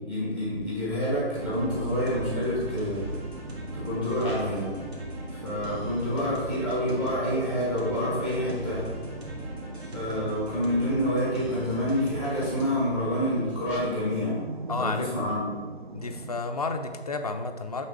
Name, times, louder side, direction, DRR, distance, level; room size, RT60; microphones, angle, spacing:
voice 1, 0.0-3.1 3.7-4.7 5.3-8.8 9.9-14.4 14.8-15.5, equal, 5° right, -8 dB, 0.7 m, -28 dB
sound 1, 0.6-14.0, left 1 dB, 30° right, 0.9 m, -44 dB
sound 2, 1.4-16.4, right 3 dB, 50° right, 0.5 m, -42 dB
sound 3, 1.4-12.8, right 1 dB, 80° right, 1.8 m, -39 dB
voice 2, 14.7-15.3 15.9-17.9, left 3 dB, 40° left, 6 dB, 0.5 m, -31 dB
8.0 x 3.4 x 4.4 m, 1.5 s
figure-of-eight pair, 150°, 32 cm